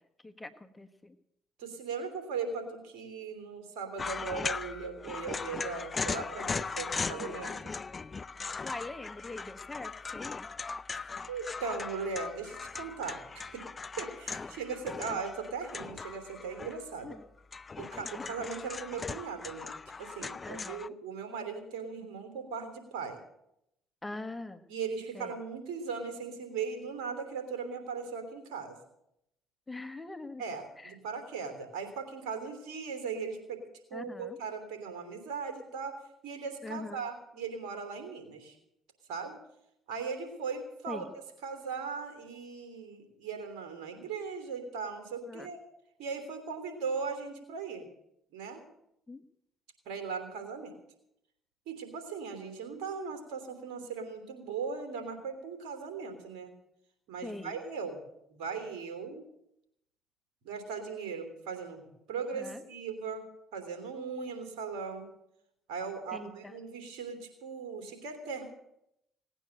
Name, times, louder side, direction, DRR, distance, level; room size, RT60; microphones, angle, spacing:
voice 1, 0.2-1.2 8.6-10.5 14.3-14.6 17.0-17.2 18.0-18.3 20.4-20.8 24.0-24.6 25.1-25.3 29.7-30.4 30.8-30.9 33.9-34.4 36.6-37.0 40.9-41.1 45.3-45.5 49.1-49.2 57.2-57.6 62.3-62.6 66.1-66.5, left 2 dB, 15° left, 8 dB, 1.4 m, -43 dB
voice 2, 1.6-7.5 11.3-13.5 14.0-17.2 17.8-23.2 24.7-28.8 30.4-33.6 33.9-36.0 36.2-38.6 39.1-39.4 39.9-41.0 41.4-45.6 46.0-47.8 48.3-48.6 49.8-50.7 51.7-56.5 57.1-58.0 58.3-59.2 60.4-61.8 62.1-63.2 63.5-65.1 65.7-68.4, right 5 dB, 75° right, 6 dB, 3.2 m, -38 dB
sound 1, 4.0-17.0 17.4-20.9, left 4 dB, 35° left, 0.5 m, -39 dB
18.0 x 9.0 x 7.7 m, 0.79 s
hypercardioid pair, 55°, 0 cm